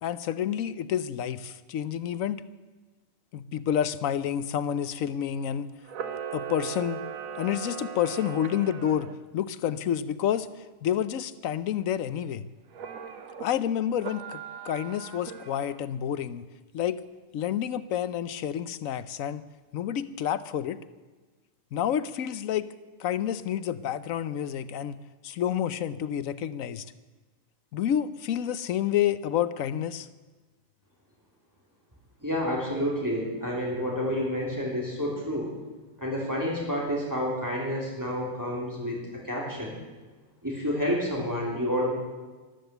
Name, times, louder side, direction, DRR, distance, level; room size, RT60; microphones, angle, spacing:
voice 1, 0.0-2.4 3.3-5.7 6.3-7.0 7.4-9.1 9.3-10.5 10.8-12.4 13.4-16.4 16.7-17.0 17.3-19.4 19.7-20.8 21.7-22.7 23.0-25.0 25.2-26.8 27.7-30.1, left 10 dB, 85° left, 14 dB, 1.1 m, -29 dB
Camera, 5.8-9.1 12.7-13.5 14.0-15.8, right 7 dB, 90° right, 1.3 m, -38 dB
voice 2, 32.2-35.5 36.0-39.8 40.4-41.9, equal, 15° right, -3 dB, 3.2 m, -29 dB
13.0 x 12.5 x 8.0 m, 1.3 s
omnidirectional pair, 1.4 m